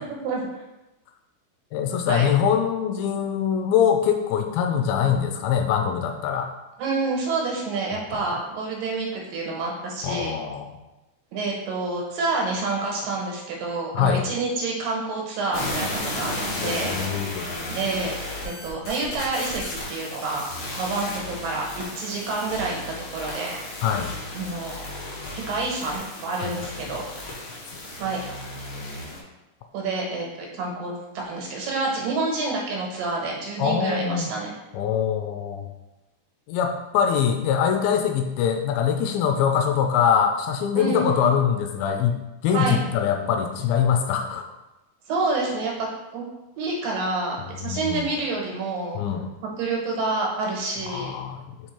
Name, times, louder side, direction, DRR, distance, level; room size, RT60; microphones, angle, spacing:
voice 1, 1.7-6.5 8.1-8.2 10.0-10.7 13.9-14.2 16.6-17.4 23.8-24.1 26.4-26.5 33.6-34.3 34.7-35.7 36.5-44.5 47.6-48.1 49.0-49.3 50.9-51.4, left 8 dB, 80° left, 5 dB, 2.2 m, -23 dB
voice 2, 6.8-10.3 11.3-16.3 16.6-17.0 17.7-18.1 18.4-19.6 19.9-20.4 20.8-22.8 23.1-23.5 24.3-24.9 25.3-27.1 28.0-28.2 29.7-34.5 40.8-41.3 42.5-42.8 45.1-45.9 46.1-46.2 46.6-49.0 49.6-51.1, right 3 dB, 70° right, -1 dB, 2.6 m, -28 dB
sound 1, 15.5-29.2, left 1 dB, 65° left, 1.3 m, -34 dB
5.1 x 4.6 x 4.3 m, 1.0 s
omnidirectional pair, 4.4 m